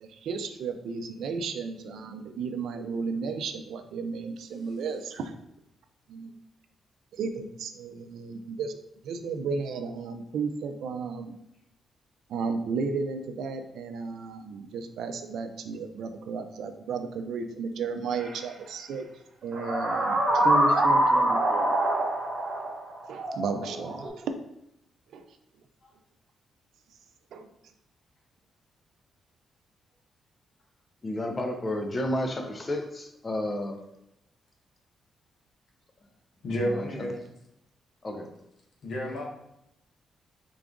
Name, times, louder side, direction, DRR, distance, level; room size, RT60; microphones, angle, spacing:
voice 1, 0.0-5.3 6.1-6.3 7.1-8.8 9.0-11.4 12.3-19.1 19.4-21.8 23.1-24.3 25.1-25.2 27.3-27.5, right 5 dB, 80° right, 7 dB, 0.4 m, -33 dB
sound 1, 18.1-18.3 19.5-24.1, right 1 dB, 50° right, 1.1 m, -25 dB
voice 2, 31.0-33.8 36.8-36.9 38.0-38.3, left 1 dB, 25° left, 3 dB, 0.5 m, -31 dB
voice 3, 36.4-37.1 38.8-39.2, equal, 75° left, -2 dB, 0.9 m, -30 dB
3.8 x 2.5 x 3.5 m, 0.83 s
cardioid pair, 115°, 0 cm